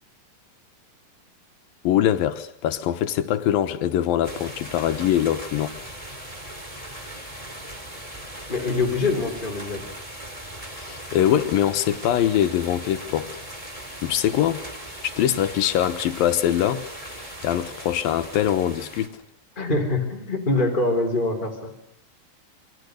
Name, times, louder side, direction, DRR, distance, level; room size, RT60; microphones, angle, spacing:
voice 1, 1.8-5.8 10.8-13.3 14.0-14.6 15.0-16.9 17.4-19.2, left 11 dB, 80° left, 3.0 m, -23 dB
sound 1, 4.2-19.1, right 1 dB, 10° right, 3.0 m, -39 dB
voice 2, 8.5-9.8 19.6-21.7, left 2 dB, 15° left, 3.4 m, -24 dB
28.0 x 25.0 x 6.5 m
omnidirectional pair, 4.1 m